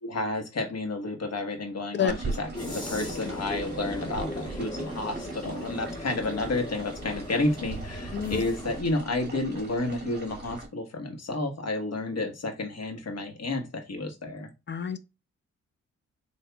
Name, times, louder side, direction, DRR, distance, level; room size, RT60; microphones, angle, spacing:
voice 1, 0.0-14.5, left 2 dB, 55° left, 1.4 m, -31 dB
sound 1, 2.1-10.7, right 3 dB, 35° right, 2.2 m, -39 dB
sound 2, 2.5-8.8, left 1 dB, 15° left, 1.2 m, -38 dB
voice 2, 8.1-8.4 14.7-15.0, left 7 dB, 35° left, 0.5 m, -27 dB
6.7 x 2.7 x 2.3 m
cardioid pair, 100°, 30 cm